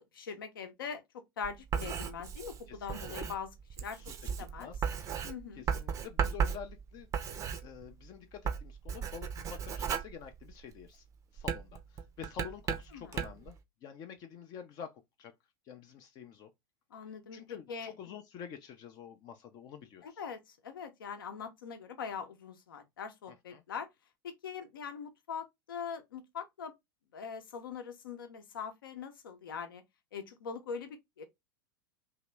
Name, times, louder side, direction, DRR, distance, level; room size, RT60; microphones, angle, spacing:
voice 1, 0.1-3.5 3.8-4.7 5.2-5.7 12.9-13.1 16.9-18.2 20.0-23.9 24.2-26.7 27.1-29.8 30.1-31.2, left 6 dB, 65° left, 0.8 m, -42 dB
Writing, 1.4-8.1 8.4-10.9 11.4-13.5, right 7 dB, 25° right, 0.5 m, -36 dB
voice 2, 2.7-3.2 3.9-4.1 4.6-4.8 5.6-7.1 7.6-11.0 11.3-13.5 13.8-15.3 15.7-16.5 17.3-20.2 23.3-23.6, left 8 dB, 35° left, 0.5 m, -48 dB
2.9 x 2.9 x 3.2 m
figure-of-eight pair, 90°, 12 cm